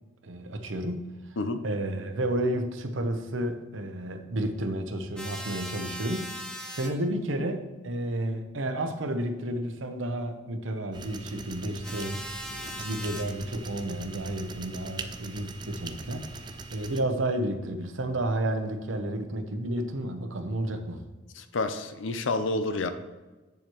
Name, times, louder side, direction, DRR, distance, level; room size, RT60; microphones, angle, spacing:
voice 1, 0.2-1.1 1.6-6.3 6.7-21.0, right 1 dB, 90° right, 7 dB, 0.8 m, -31 dB
sound 1, 5.2-6.9 11.8-13.2, equal, 5° left, 0.7 m, -39 dB
sound 2, 10.9-17.0, right 3 dB, 25° right, 0.4 m, -42 dB
voice 2, 21.3-22.9, left 2 dB, 85° left, 9 dB, 0.6 m, -29 dB
7.9 x 7.1 x 3.1 m, 1.2 s
head